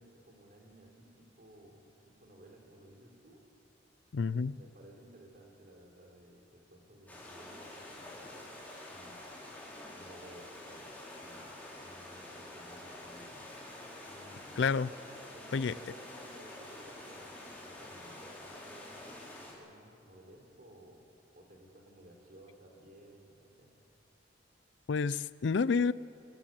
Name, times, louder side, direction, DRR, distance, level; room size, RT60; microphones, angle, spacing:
voice 1, 0.0-3.4 4.1-8.4 8.9-9.3 9.9-13.4 14.1-14.7 15.3-23.7, right 1 dB, 50° right, 1 dB, 4.1 m, -57 dB
voice 2, 4.1-4.5 14.6-14.9 15.5-15.7 24.9-25.9, left 5 dB, 65° left, 19 dB, 0.4 m, -29 dB
sound 1, 7.1-19.5, left 1 dB, 10° left, 4.6 m, -48 dB
24.5 x 15.0 x 9.2 m, 2.7 s
head